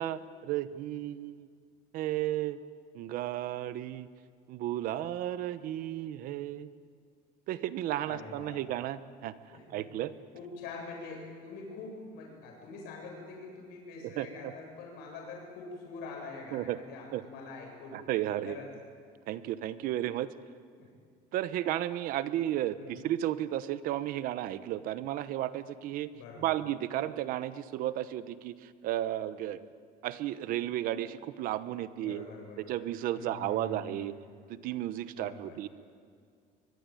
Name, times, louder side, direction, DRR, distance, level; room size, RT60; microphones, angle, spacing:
voice 1, 0.0-1.5 1.9-2.6 2.9-4.1 4.5-6.7 7.5-10.2 14.0-14.5 16.5-16.8 17.1-17.2 17.9-18.6 19.3-20.3 21.3-26.1 26.4-29.7 30.0-32.3 32.6-34.2 34.5-35.7, right 13 dB, 55° right, 14 dB, 1.1 m, -33 dB
voice 2, 8.1-8.6 9.5-9.8 10.3-18.0 18.4-18.7 20.8-20.9 22.8-23.0 26.1-26.5 31.9-32.8 33.1-34.2 35.1-35.6, left 4 dB, 70° left, 0 dB, 7.7 m, -45 dB
23.5 x 22.0 x 9.1 m, 2.1 s
cardioid pair, 165°, 17 cm